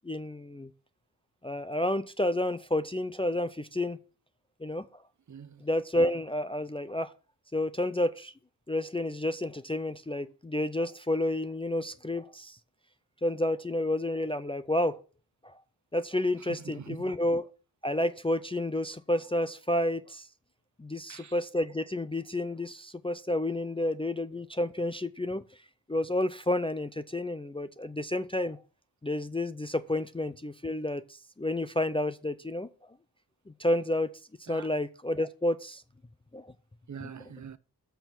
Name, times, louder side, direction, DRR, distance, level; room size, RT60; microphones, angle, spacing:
voice 1, 0.0-0.7 1.4-4.0 4.6-4.8 5.6-7.1 7.5-8.3 8.7-12.6 13.2-15.0 15.4-15.6 15.9-17.5 17.8-20.3 20.8-25.4 25.9-28.6 29.0-32.7 33.6-34.2 34.5-35.8 36.3-36.5 37.0-37.1, left 1 dB, 15° left, 0.4 m, -30 dB
voice 2, 5.3-5.6 16.4-17.1 21.1-21.4 34.5-34.7 36.9-37.6, right 7 dB, 45° right, 0.7 m, -44 dB
13.5 x 4.5 x 5.9 m
wide cardioid pair, 155°, 40 cm